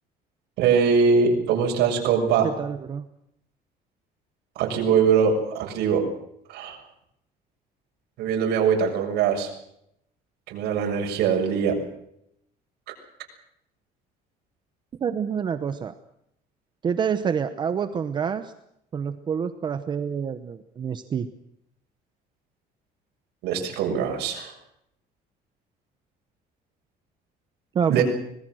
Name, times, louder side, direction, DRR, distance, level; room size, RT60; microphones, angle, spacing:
voice 1, 0.6-2.5 4.5-6.0 6.5-6.8 8.2-9.5 10.5-11.8 23.4-24.5 27.9-28.0, right 6 dB, 80° right, 2 dB, 6.8 m, -22 dB
voice 2, 2.4-3.0 15.0-15.9 16.8-18.5 18.9-21.3 27.7-28.0, right 7 dB, 25° right, 10 dB, 0.9 m, -27 dB
25.0 x 20.5 x 6.4 m, 0.75 s
cardioid pair, 180°, 17 cm